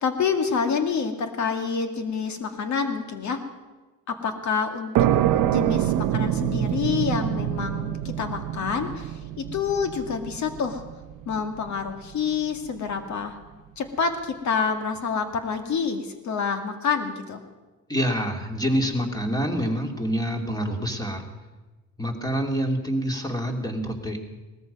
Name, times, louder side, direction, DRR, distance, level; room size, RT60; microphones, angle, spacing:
voice 1, 0.0-3.4 4.1-4.9 5.4-10.8 11.3-13.4 13.8-17.4, left 6 dB, 65° left, 6 dB, 2.0 m, -27 dB
sound 1, 4.9-12.3, right 12 dB, 85° right, 0.7 m, -26 dB
voice 2, 17.9-21.2 22.0-24.2, equal, 15° left, 3 dB, 2.6 m, -26 dB
19.0 x 14.0 x 5.4 m, 1.2 s
cardioid pair, 90°, 30 cm